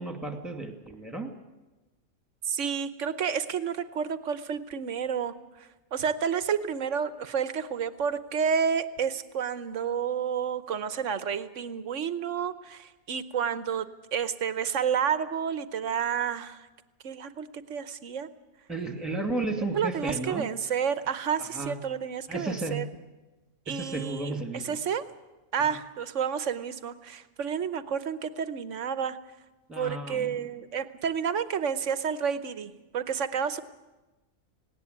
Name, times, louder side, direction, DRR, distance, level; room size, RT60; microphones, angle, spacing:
voice 1, 0.0-1.3 18.7-20.5 21.4-21.8 22.3-22.8 23.7-24.8 29.7-30.5, right 2 dB, ahead, 3 dB, 2.4 m, -33 dB
voice 2, 2.4-16.7 17.0-18.3 19.7-22.9 23.7-24.4 24.6-25.0 25.5-29.2 29.8-33.6, right 7 dB, 65° right, 12 dB, 1.3 m, -30 dB
18.5 x 17.5 x 9.4 m, 1.1 s
omnidirectional pair, 1.4 m